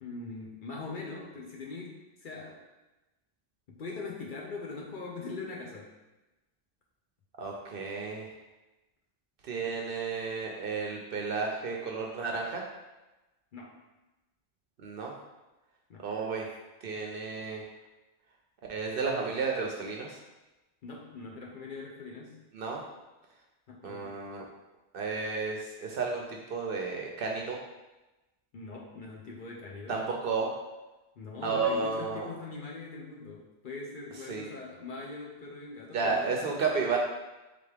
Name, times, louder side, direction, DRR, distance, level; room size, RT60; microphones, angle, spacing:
voice 1, 0.0-2.6 3.7-5.9 13.5-13.8 15.9-16.1 20.8-22.4 23.7-24.1 28.5-30.0 31.2-36.6, left 3 dB, 55° left, -2 dB, 0.7 m, -42 dB
voice 2, 7.4-8.3 9.4-12.6 14.8-15.1 16.0-16.5 16.8-17.7 18.7-20.2 22.5-22.8 23.8-24.4 24.9-27.6 29.9-30.5 31.4-32.3 34.3-34.5 35.9-37.0, right 4 dB, 60° right, 0 dB, 0.6 m, -32 dB
3.8 x 3.4 x 3.3 m, 1.1 s
omnidirectional pair, 1.2 m